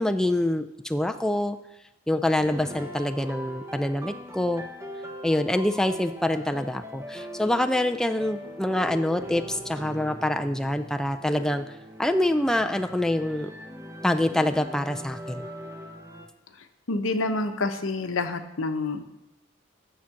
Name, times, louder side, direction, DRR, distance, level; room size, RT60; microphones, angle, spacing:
voice 1, 0.0-1.6 2.1-4.6 5.2-11.7 12.0-13.5 14.0-15.5, left 1 dB, 5° left, 6 dB, 0.4 m, -25 dB
sound 1, 2.4-16.3, equal, 15° right, 1.0 m, -41 dB
voice 2, 16.9-19.1, left 3 dB, 85° left, 8 dB, 0.9 m, -28 dB
10.0 x 7.4 x 5.8 m, 0.92 s
head